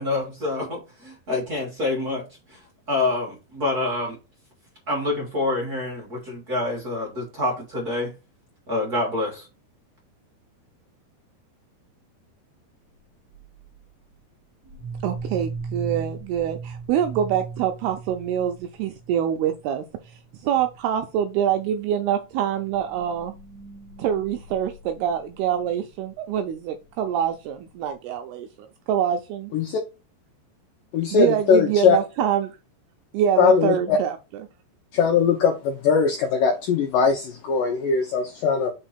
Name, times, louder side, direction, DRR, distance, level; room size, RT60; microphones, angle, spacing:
voice 1, 0.0-2.2 2.5-2.6 2.9-4.2 4.9-8.1 8.7-9.5, left 2 dB, 40° right, 1.4 m, -27 dB
sound 1, 13.3-13.8 14.7-19.2 19.5-19.7 19.9-20.2 20.5-20.8 21.5-21.6 22.6-25.7, right 4 dB, 55° right, 1.1 m, -38 dB
voice 2, 15.0-23.3 24.0-29.5 31.1-32.5 33.1-34.2, right 9 dB, 80° right, 2.3 m, -25 dB
voice 3, 30.9-32.0 33.4-34.0 34.9-38.7, left 6 dB, 80° left, 2.0 m, -20 dB
5.6 x 4.5 x 4.3 m
omnidirectional pair, 5.1 m